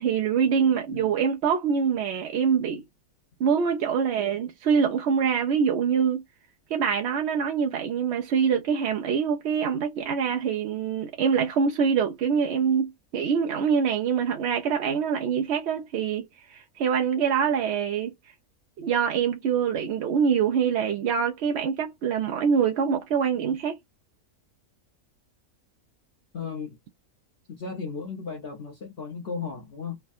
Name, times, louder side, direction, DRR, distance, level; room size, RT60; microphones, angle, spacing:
voice 1, 0.0-2.8 3.4-6.2 6.7-18.1 18.8-23.8, right 7 dB, 65° right, 0.7 m, -25 dB
voice 2, 26.3-26.8 27.5-30.0, left 5 dB, 50° left, 1.0 m, -35 dB
3.3 x 2.2 x 2.5 m
omnidirectional pair, 1.5 m